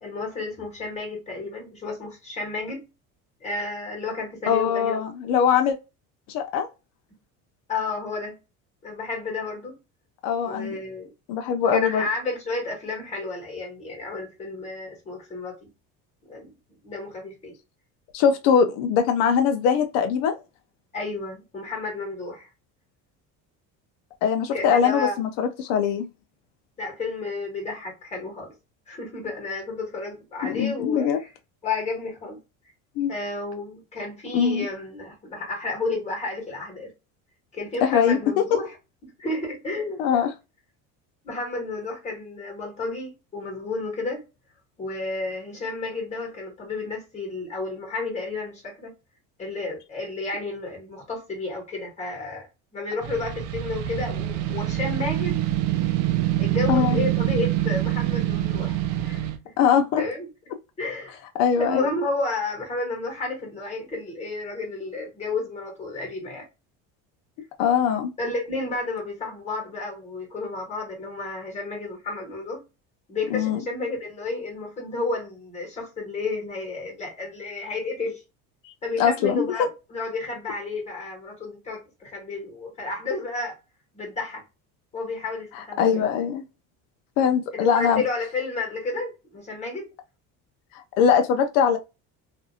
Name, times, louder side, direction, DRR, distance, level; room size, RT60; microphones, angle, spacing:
voice 1, 0.0-2.8 3.4-5.0 7.7-8.4 8.8-9.8 10.4-11.1 11.7-15.7 16.3-16.5 16.8-17.6 20.9-22.5 24.5-25.2 26.8-28.5 28.9-31.3 31.6-32.4 33.1-36.9 37.5-38.7 39.0-40.3 41.2-44.2 44.8-48.9 49.4-52.5 52.7-55.4 56.0-56.1 56.4-59.6 60.0-60.3 60.8-61.2 61.6-66.4 68.2-72.6 73.1-78.2 78.8-83.6 83.9-84.4 84.9-86.1 87.5-89.9, left 3 dB, 20° left, 1.3 m, -31 dB
voice 2, 4.5-5.8 6.3-6.7 10.2-10.7 11.3-12.0 18.1-20.4 24.2-26.1 30.4-31.2 33.0-33.1 34.3-34.7 37.8-38.2 40.0-40.3 56.7-57.0 59.6-60.0 61.4-61.9 67.6-68.1 73.3-73.6 78.6-78.7 79.0-79.4 85.6-86.4 87.2-88.0 91.0-91.8, left 7 dB, 80° left, 0.5 m, -21 dB
sound 1, 53.0-59.4, right 14 dB, 70° right, 0.5 m, -25 dB
2.6 x 2.4 x 2.6 m
cardioid pair, 155°, 34 cm